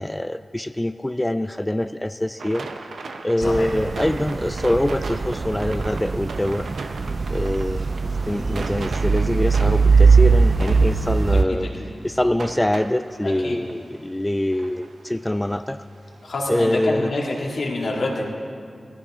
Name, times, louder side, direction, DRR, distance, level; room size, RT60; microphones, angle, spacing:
voice 1, 0.0-2.7 3.2-6.7 7.3-7.9 8.3-11.7 12.0-15.8 16.5-17.1, left 1 dB, 10° left, 10 dB, 0.3 m, -24 dB
sound 1, 2.4-16.8, right 3 dB, 90° right, 0.9 m, -39 dB
voice 2, 3.4-3.7 11.5-11.9 13.2-13.6 16.2-18.2, left 2 dB, 75° left, -3 dB, 2.3 m, -27 dB
sound 2, 3.4-11.5, right 4 dB, 55° right, 0.4 m, -20 dB
20.0 x 14.5 x 3.7 m, 2.3 s
wide cardioid pair, 80°, 0 cm